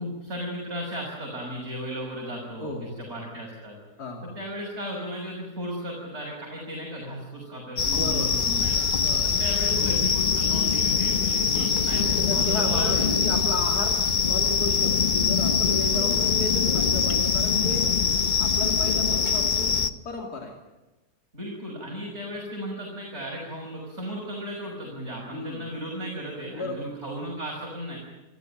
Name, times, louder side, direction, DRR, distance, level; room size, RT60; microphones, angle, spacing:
voice 1, 0.0-3.8 4.2-8.7 9.2-13.1 15.9-16.3 21.3-28.0, equal, 45° right, -2 dB, 6.5 m, -35 dB
voice 2, 2.6-3.0 4.0-4.4 7.9-8.4 9.0-9.3 11.5-14.0 14.3-17.9 18.4-19.8 20.0-20.5 25.3-25.7 26.5-26.9, left 2 dB, 75° left, 2 dB, 3.2 m, -34 dB
sound 1, 7.8-19.9, left 6 dB, 35° left, 0.9 m, -23 dB
29.0 x 14.5 x 9.0 m, 1.1 s
omnidirectional pair, 1.7 m